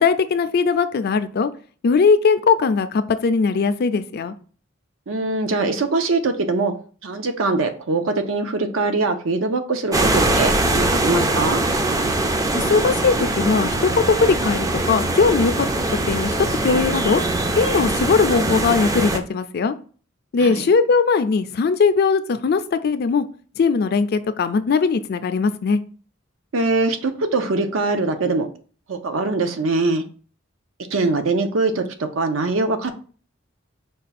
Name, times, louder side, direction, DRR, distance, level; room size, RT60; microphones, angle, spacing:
voice 1, 0.0-1.5 1.8-4.3 12.5-15.7 16.1-16.3 16.6-17.2 17.6-19.7 20.3-23.2 23.6-25.8, left 5 dB, 50° left, 11 dB, 0.4 m, -19 dB
voice 2, 5.1-6.7 7.0-11.6 20.4-20.7 26.5-28.5 28.9-30.0 30.9-32.9, right 3 dB, 75° right, 7 dB, 0.7 m, -22 dB
sound 1, 9.9-19.2, right 2 dB, 15° right, 0.4 m, -22 dB
5.2 x 2.3 x 4.1 m, 0.41 s
head